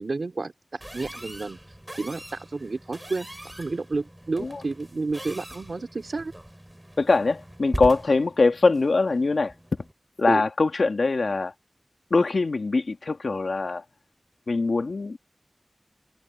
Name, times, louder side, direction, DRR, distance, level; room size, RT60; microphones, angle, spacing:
voice 1, 0.0-6.3 10.3-10.4, right 3 dB, 80° right, 3.6 m, -31 dB
sound 1, 0.8-9.9, right 1 dB, 15° right, 2.6 m, -40 dB
voice 2, 7.0-9.5 10.2-11.5 12.1-13.8 14.5-15.2, left 3 dB, 85° left, 2.0 m, -22 dB
wide cardioid pair, 45°, 0 cm